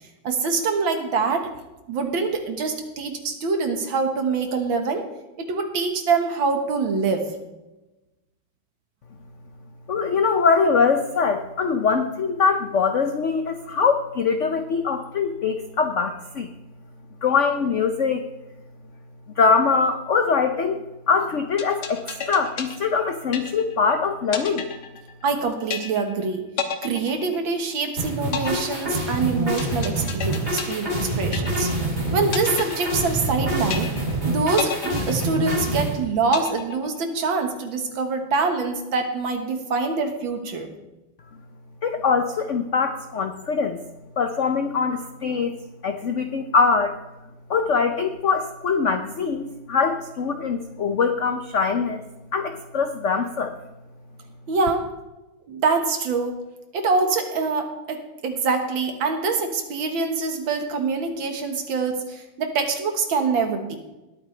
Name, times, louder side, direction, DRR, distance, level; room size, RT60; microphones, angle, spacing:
voice 1, 0.2-1.5 1.9-5.1 5.4-7.3 25.2-26.5 26.8-31.7 32.1-33.9 34.3-40.7 54.5-54.9 55.5-56.5 56.7-63.8, right 4 dB, 70° right, 5 dB, 2.1 m, -25 dB
voice 2, 9.9-16.5 17.2-18.2 19.4-24.6 41.8-43.8 44.2-45.5 45.8-47.0 47.5-52.0 52.3-53.6, left 5 dB, 80° left, 7 dB, 0.6 m, -22 dB
sound 1, 21.6-23.9 24.3-25.4 25.7-26.2 26.6-27.8 28.3-31.9 32.3-33.4 33.7-34.2 34.6-35.8 36.3-37.3, left 7 dB, 60° left, 1.5 m, -32 dB
sound 2, 28.0-36.0, right 1 dB, 30° right, 3.7 m, -26 dB
20.0 x 8.8 x 3.3 m, 1.0 s
omnidirectional pair, 2.3 m